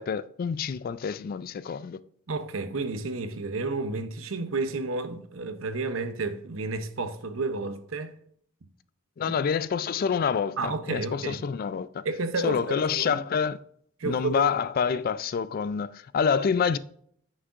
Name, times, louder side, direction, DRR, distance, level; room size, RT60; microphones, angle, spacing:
voice 1, 0.0-2.0 9.2-12.0 12.4-13.6 14.0-16.8, left 6 dB, 45° left, 0.3 m, -27 dB
voice 2, 2.3-8.1 10.6-11.4 12.0-13.2 14.0-14.5, right 3 dB, 85° right, 0.7 m, -31 dB
9.3 x 6.3 x 2.5 m
head